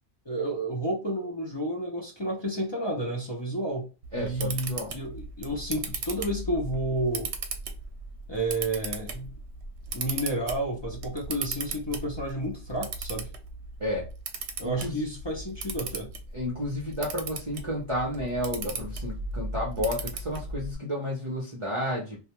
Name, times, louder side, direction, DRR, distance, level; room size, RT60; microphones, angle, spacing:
voice 1, 0.3-7.3 8.3-9.3 9.9-13.3 14.6-16.1, right 1 dB, 35° left, -1 dB, 0.5 m, -31 dB
Camera, 4.0-20.7, right 3 dB, 75° right, 0.8 m, -37 dB
voice 2, 4.1-5.0 13.8-14.1 14.6-15.1 16.3-22.2, left 1 dB, 35° right, -4 dB, 0.6 m, -31 dB
2.3 x 2.2 x 2.9 m, 0.31 s
omnidirectional pair, 1.2 m